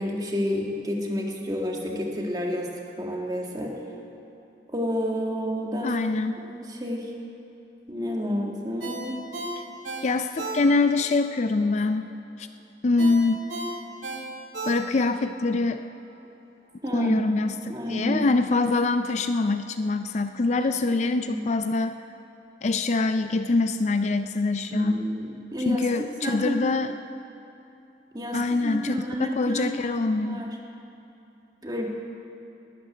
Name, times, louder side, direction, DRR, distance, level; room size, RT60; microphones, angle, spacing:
voice 1, 0.0-2.7 3.0-3.8 4.7-5.9 6.4-7.1 7.9-9.2 16.8-17.2 17.7-18.3 20.8-20.9 21.2-21.4 24.7-26.7 28.1-29.7 30.2-30.6 31.6-31.9, equal, 20° right, 0 dB, 1.8 m, -30 dB
voice 2, 5.8-6.4 10.0-12.1 12.4-12.5 12.8-13.5 14.7-15.9 16.9-17.6 17.9-22.0 22.6-25.0 25.7-26.9 28.3-30.4, left 3 dB, 40° left, 9 dB, 0.4 m, -24 dB
Ringtone, 8.8-11.1 11.4-11.5 13.0-15.2 15.6-15.7, right 2 dB, 85° right, 2.4 m, -35 dB
12.0 x 10.5 x 9.9 m, 2.8 s
head